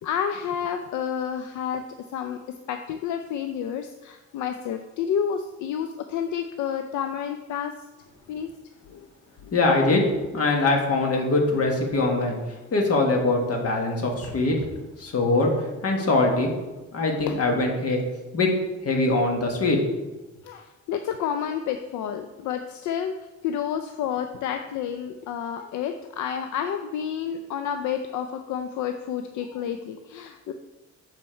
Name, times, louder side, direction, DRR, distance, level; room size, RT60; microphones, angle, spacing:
voice 1, 0.0-1.8 2.1-2.4 2.7-7.7 8.3-8.5 8.9-9.1 9.4-9.5 17.3-17.4 20.4-23.2 23.4-30.5, left 8 dB, 75° left, 7 dB, 0.5 m, -30 dB
voice 2, 9.5-10.1 10.3-12.4 12.7-14.6 15.0-15.5 15.8-16.5 16.9-18.0 18.3-18.5 18.8-19.8, left 2 dB, 50° left, 1 dB, 1.6 m, -22 dB
7.1 x 4.2 x 4.4 m, 1.1 s
cardioid pair, 90°, 30 cm